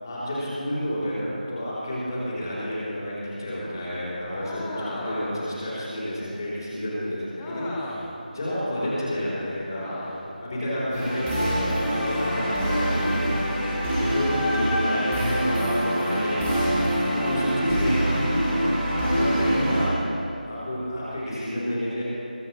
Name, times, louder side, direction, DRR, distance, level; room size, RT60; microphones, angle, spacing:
voice 1, 0.0-8.0 8.3-18.3 18.9-20.1 20.4-22.0, equal, 25° left, -8 dB, 4.0 m, -30 dB
sound 1, 4.3-5.6 7.4-8.2 9.8-10.4 12.1-12.9, left 1 dB, 5° left, 0.6 m, -36 dB
sound 2, 10.9-19.8, equal, 10° right, 1.8 m, -25 dB
22.0 x 8.9 x 4.6 m, 2.7 s
figure-of-eight pair, 170°, 5 cm